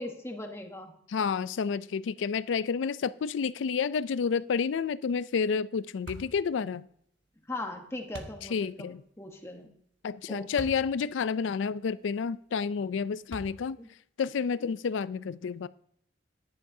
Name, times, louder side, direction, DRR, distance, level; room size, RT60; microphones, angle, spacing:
voice 1, 0.0-0.9 7.5-9.7 10.3-10.5 13.8-13.9, left 1 dB, 15° left, 3 dB, 1.1 m, -39 dB
voice 2, 1.1-6.9 8.5-9.0 10.0-13.8 14.2-15.7, left 6 dB, 90° left, 17 dB, 0.4 m, -30 dB
sound 1, 6.1-6.4 8.1-8.4 10.6-10.9 11.5-11.6 13.3-13.8, right 1 dB, 80° right, 1.3 m, -42 dB
14.0 x 10.0 x 2.7 m, 0.69 s
head